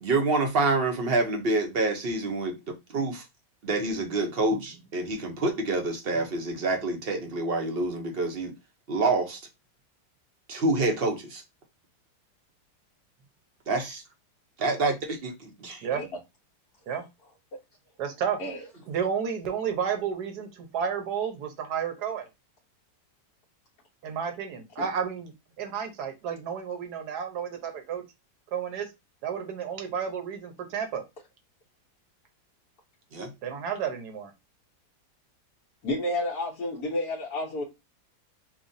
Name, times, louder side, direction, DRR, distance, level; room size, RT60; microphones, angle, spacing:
voice 1, 0.0-2.6 2.9-3.2 3.6-8.5 8.9-9.4 10.5-11.4 13.7-14.0 14.6-15.9 33.1-33.3, right 2 dB, 50° right, 0.8 m, -27 dB
voice 2, 18.0-18.4 18.9-22.3 24.0-25.3 25.6-28.0 28.5-28.9 29.2-31.0 33.4-34.3, right 7 dB, 75° right, 1.5 m, -31 dB
voice 3, 35.8-37.6, left 1 dB, 65° left, 1.3 m, -30 dB
5.9 x 2.3 x 2.6 m
omnidirectional pair, 1.8 m